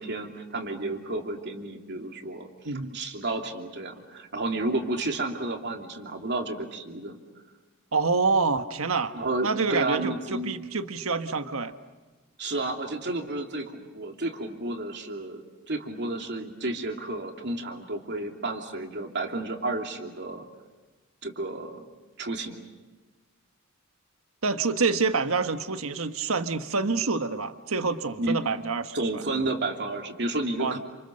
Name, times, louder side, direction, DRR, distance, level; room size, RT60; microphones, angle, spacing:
voice 1, 0.0-7.2 9.1-10.6 12.4-20.4 21.2-21.8 22.2-22.6 28.2-28.4 28.9-30.8, right 2 dB, 55° right, 2 dB, 2.9 m, -31 dB
voice 2, 7.9-9.1 9.4-11.7 24.4-29.2 30.6-30.8, right 4 dB, 75° right, 8 dB, 1.4 m, -27 dB
29.0 x 27.5 x 6.6 m, 1.2 s
head